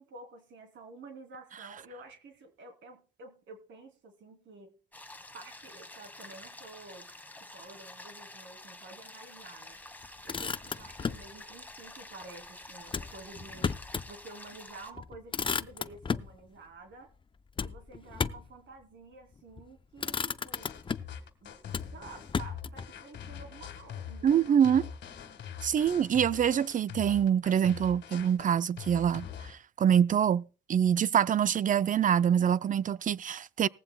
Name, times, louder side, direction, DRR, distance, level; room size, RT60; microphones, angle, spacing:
voice 1, 0.0-4.7 5.3-7.1 7.4-9.8 10.2-13.7 14.1-17.1 17.6-20.8 21.4-21.6 21.9-24.7, right 3 dB, 70° right, 3.2 m, -50 dB
sound 1, 4.9-14.9, left 2 dB, 10° left, 1.4 m, -49 dB
Motor vehicle (road), 10.0-11.3 12.9-14.1 14.5-14.6 15.0-16.4 17.6-18.6 19.4-19.7 20.0-21.2 21.7-22.9, left 5 dB, 25° left, 0.5 m, -34 dB
sound 2, 20.5-29.5, left 8 dB, 65° left, 1.7 m, -43 dB
voice 2, 24.2-24.9 25.6-33.7, right 8 dB, 40° right, 0.5 m, -25 dB
19.0 x 15.0 x 2.3 m
cardioid pair, 90°, 20 cm